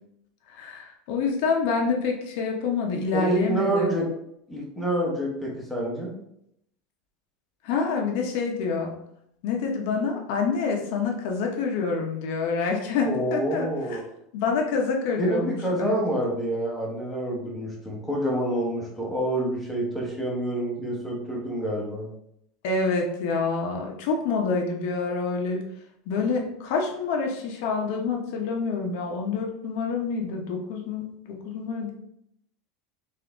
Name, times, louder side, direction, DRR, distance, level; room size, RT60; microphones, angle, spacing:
voice 1, 0.5-3.9 7.6-8.9 9.4-14.0 14.3-16.0 22.6-25.6 26.1-31.9, left 4 dB, 60° left, 1 dB, 0.7 m, -27 dB
voice 2, 3.1-4.1 4.5-6.1 13.0-14.0 15.2-22.1, right 1 dB, ahead, -3 dB, 0.9 m, -27 dB
3.8 x 2.6 x 3.4 m, 0.75 s
supercardioid pair, 155°, 0 cm